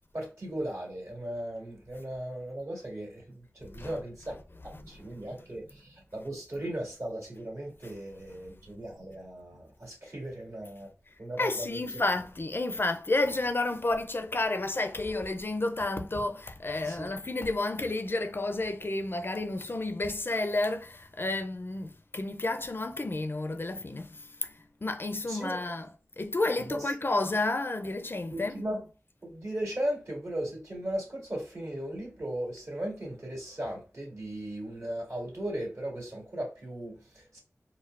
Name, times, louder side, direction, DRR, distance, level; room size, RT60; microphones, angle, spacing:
voice 1, 0.1-4.4 4.6-10.9 11.2-12.0 16.8-17.1 25.3-25.6 26.7-26.8 28.3-28.8 29.2-37.4, right 1 dB, 60° right, 1.8 m, -37 dB
voice 2, 11.1-28.5, left 2 dB, 45° left, 0.4 m, -31 dB
4.4 x 2.0 x 2.4 m
wide cardioid pair, 55°, 5 cm